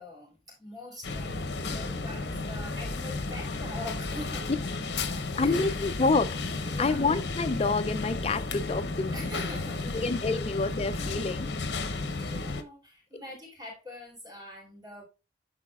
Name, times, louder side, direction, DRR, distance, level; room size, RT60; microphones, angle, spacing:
voice 1, 0.0-4.5 5.1-5.8 6.7-7.1 9.1-10.0 10.3-10.4 11.2-11.4 11.8-15.1, left 1 dB, 25° right, 3.0 m, -44 dB
sound 1, 1.0-12.6, left 3 dB, 75° left, 0.8 m, -33 dB
voice 2, 5.4-9.2 9.9-11.5, left 3 dB, 35° left, 0.4 m, -28 dB
12.5 x 4.1 x 2.4 m
head